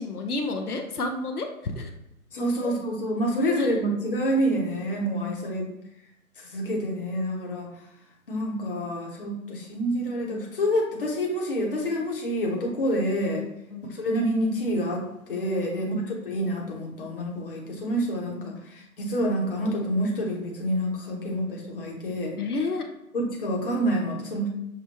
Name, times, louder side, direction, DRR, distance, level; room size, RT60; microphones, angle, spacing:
voice 1, 0.0-1.9 2.6-2.7 3.6-3.8 5.5-5.9 13.0-13.1 13.7-13.8 15.9-16.0 18.4-18.8 22.4-22.9, left 3 dB, 90° left, 4 dB, 0.7 m, -31 dB
voice 2, 2.3-5.7 6.4-7.7 8.3-13.4 14.0-15.9 16.2-22.4 23.1-24.5, equal, 40° left, -1 dB, 0.9 m, -27 dB
6.0 x 2.2 x 3.0 m, 0.85 s
figure-of-eight pair, 145°, 43 cm